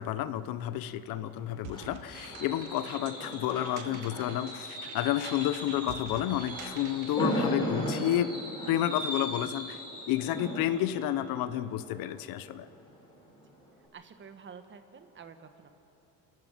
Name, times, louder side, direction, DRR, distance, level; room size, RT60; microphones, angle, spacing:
voice 1, 0.0-8.4 8.7-9.8 10.1-12.7, left 12 dB, 65° left, 14 dB, 0.9 m, -31 dB
Fireworks, 1.1-12.8 13.1-13.4 13.7-13.8, equal, 10° left, 5.9 m, -37 dB
sound 1, 1.6-7.3, right 8 dB, 55° right, 1.4 m, -49 dB
voice 2, 3.9-4.6 13.9-15.7, right 6 dB, 30° right, 8 dB, 1.4 m, -49 dB
29.5 x 12.0 x 7.5 m, 2.9 s
cardioid pair, 135°, 38 cm